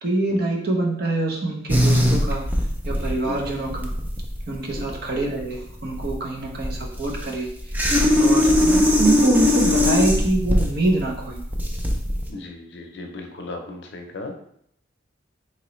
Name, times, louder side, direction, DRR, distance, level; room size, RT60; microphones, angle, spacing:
voice 1, 0.0-2.5 2.8-3.9 4.5-7.5 8.2-11.4, right 2 dB, 50° right, 0 dB, 0.7 m, -25 dB
sound 1, 1.7-12.3, left 1 dB, 10° right, 0.3 m, -21 dB
voice 2, 8.3-8.6 12.3-14.4, left 2 dB, 60° left, 3 dB, 0.6 m, -36 dB
3.8 x 2.9 x 3.1 m, 0.71 s
head